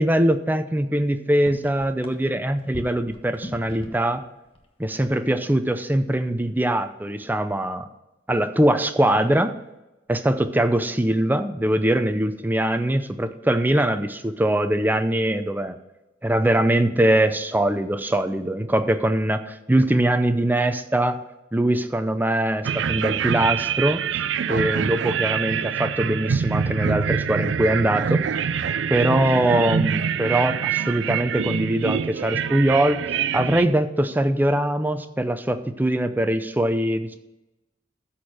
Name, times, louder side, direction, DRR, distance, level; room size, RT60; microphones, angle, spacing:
voice 1, 0.0-4.2 4.8-7.9 8.3-9.5 10.1-15.8 16.2-21.2 21.5-28.2 28.9-33.0 33.3-37.1, right 1 dB, 10° right, 9 dB, 0.5 m, -22 dB
sound 1, 0.9-1.0 1.3-4.2 4.5-5.5 5.8-6.1, left 1 dB, 30° left, 1.1 m, -40 dB
sound 2, 22.6-33.7, right 7 dB, 70° right, 0.4 m, -25 dB
13.0 x 4.4 x 6.3 m, 0.99 s
head